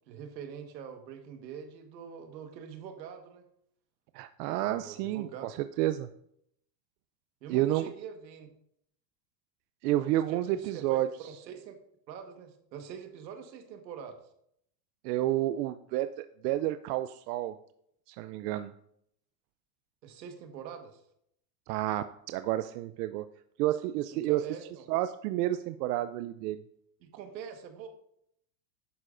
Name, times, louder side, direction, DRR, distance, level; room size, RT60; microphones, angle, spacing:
voice 1, 0.1-3.5 4.6-5.4 7.4-8.5 10.3-11.8 12.1-14.2 20.0-21.0 24.1-24.8 27.0-27.9, right 7 dB, 90° right, 6 dB, 1.7 m, -44 dB
voice 2, 4.1-6.1 7.5-7.8 9.8-11.1 15.0-17.6 18.1-18.7 21.7-23.2 23.6-24.5 24.9-26.6, right 14 dB, 70° right, 11 dB, 0.6 m, -30 dB
11.0 x 8.6 x 2.6 m, 0.71 s
supercardioid pair, 110°, 50 cm